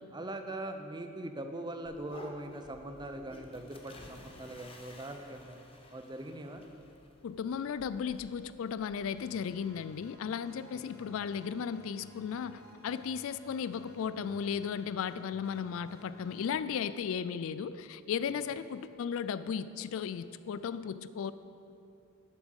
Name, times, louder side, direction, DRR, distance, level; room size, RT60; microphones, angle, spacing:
voice 1, 0.1-5.6 5.9-6.6 10.7-11.1 18.3-18.4, right 1 dB, 20° right, 6 dB, 0.6 m, -42 dB
sound 1, 1.8-10.1, left 1 dB, 25° left, 0.9 m, -54 dB
voice 2, 7.2-21.3, left 7 dB, 65° left, 14 dB, 0.3 m, -35 dB
sound 2, 9.0-16.5, equal, 50° left, 1.0 m, -57 dB
8.7 x 7.3 x 6.5 m, 2.7 s
head